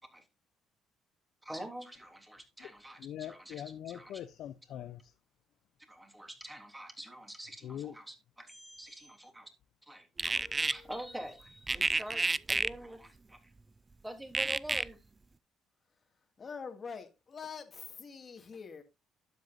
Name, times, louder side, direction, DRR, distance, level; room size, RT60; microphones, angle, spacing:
voice 1, 1.4-4.1 5.9-9.5 9.9-13.5 14.0-15.0, right 1 dB, 10° right, 3.2 m, -46 dB
voice 2, 3.0-5.1 7.6-7.9, left 11 dB, 70° left, 0.7 m, -42 dB
sound 1, 10.2-10.7 11.7-12.7 14.3-14.8, right 3 dB, 25° right, 0.4 m, -29 dB
voice 3, 10.3-11.1 16.4-18.8, left 5 dB, 40° left, 2.2 m, -46 dB
12.0 x 8.1 x 2.7 m
supercardioid pair, 75°, 0 cm